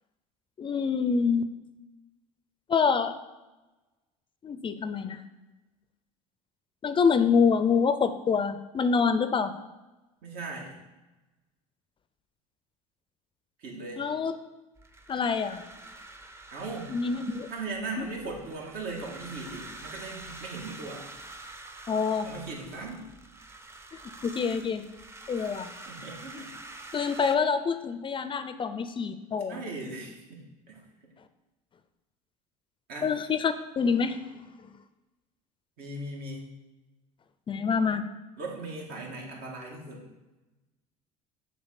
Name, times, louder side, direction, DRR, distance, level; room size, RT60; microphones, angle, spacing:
voice 1, 0.6-1.5 2.7-3.1 4.4-5.2 6.8-9.5 14.0-14.3 15.1-15.6 16.9-17.5 18.0-18.1 21.9-22.3 24.2-24.8 25.3-25.7 26.9-29.6 33.0-34.2 37.5-38.0, left 5 dB, 30° left, 11 dB, 0.5 m, -26 dB
voice 2, 10.2-10.8 13.6-14.0 16.5-16.9 17.5-21.1 22.2-23.1 25.3-25.4 25.9-26.5 29.5-30.8 32.9-33.1 35.8-36.5 38.4-40.1, right 3 dB, 65° right, -1 dB, 2.0 m, -38 dB
sound 1, 14.8-27.4, right 2 dB, 15° right, 0.7 m, -46 dB
6.9 x 3.7 x 5.8 m, 1.1 s
supercardioid pair, 95°, 17 cm